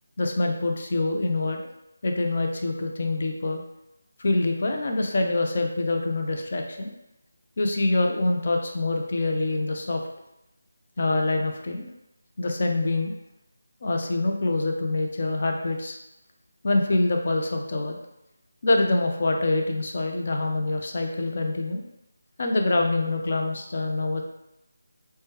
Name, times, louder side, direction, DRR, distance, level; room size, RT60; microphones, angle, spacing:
voice 1, 0.2-1.6 2.0-3.6 4.2-6.9 7.6-10.0 11.0-11.9 12.4-13.1 13.8-16.0 16.6-18.0 18.6-21.8 22.4-24.2, left 2 dB, 45° left, 3 dB, 0.5 m, -25 dB
3.1 x 2.2 x 3.2 m, 0.88 s
figure-of-eight pair, 160°, 0 cm